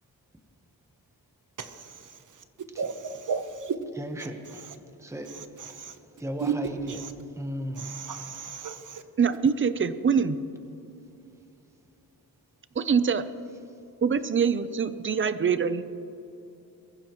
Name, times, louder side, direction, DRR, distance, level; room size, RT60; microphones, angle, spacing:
voice 1, 1.6-2.1 2.8-3.7 5.6-5.9 6.4-6.5 6.9-7.1 7.8-9.0, right 6 dB, 55° right, 8 dB, 1.0 m, -33 dB
voice 2, 4.0-4.6 5.0-5.3 5.6-5.7 6.2-7.0 7.3-7.9, equal, 10° right, 4 dB, 1.1 m, -35 dB
voice 3, 9.2-10.4 12.8-13.2 14.0-15.8, right 6 dB, 35° right, 13 dB, 0.6 m, -24 dB
23.0 x 15.0 x 3.1 m, 2.8 s
wide cardioid pair, 145°, 37 cm